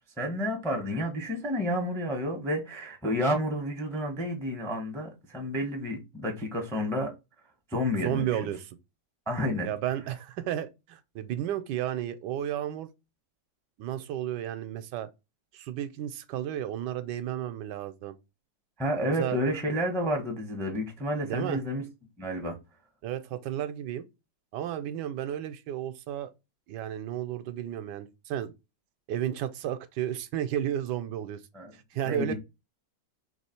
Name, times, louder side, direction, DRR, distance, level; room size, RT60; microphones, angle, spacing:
voice 1, 0.2-7.1 7.7-8.5 9.3-9.7 18.8-21.8 22.2-22.6 31.5-31.7 32.0-32.3, equal, 5° left, 0.5 m, -30 dB
voice 2, 8.0-8.7 9.6-12.9 13.8-15.1 15.5-18.2 19.0-19.4 21.2-21.6 23.0-24.0 24.5-26.3 26.7-28.5 29.1-31.4 31.9-32.3, right 11 dB, 80° right, 1.2 m, -33 dB
3.2 x 3.1 x 4.2 m
omnidirectional pair, 1.9 m